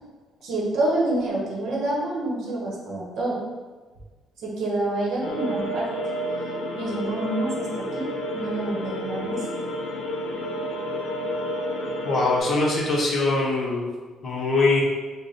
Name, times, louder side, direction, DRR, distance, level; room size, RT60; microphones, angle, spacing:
voice 1, 0.4-3.4 4.4-5.9 6.7-9.4, right 2 dB, 60° right, -4 dB, 0.9 m, -27 dB
sound 1, 5.2-12.4, equal, 85° left, 0.6 m, -30 dB
voice 2, 12.0-13.9 14.2-14.8, left 3 dB, 30° left, -5 dB, 0.8 m, -22 dB
3.3 x 2.1 x 4.0 m, 1.4 s
cardioid pair, 175°, 0 cm